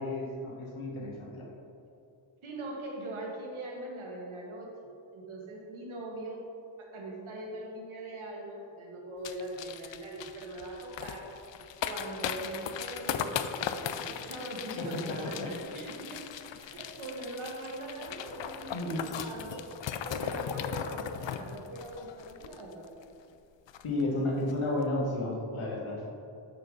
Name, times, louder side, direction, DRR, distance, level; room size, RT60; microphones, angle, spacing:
voice 1, 0.0-1.5 14.8-15.5 18.7-19.0 23.8-26.0, left 2 dB, 85° left, -3 dB, 1.6 m, -32 dB
voice 2, 2.4-4.7 5.1-6.4 6.8-11.3 11.8-16.2 16.6-22.9, right 1 dB, 85° right, -1 dB, 1.5 m, -41 dB
sound 1, 9.2-23.0 23.3-23.4 23.7-24.0 24.4-24.5, left 8 dB, 65° left, 0.5 m, -38 dB
6.6 x 6.6 x 3.8 m, 2.7 s
cardioid pair, 65°, 48 cm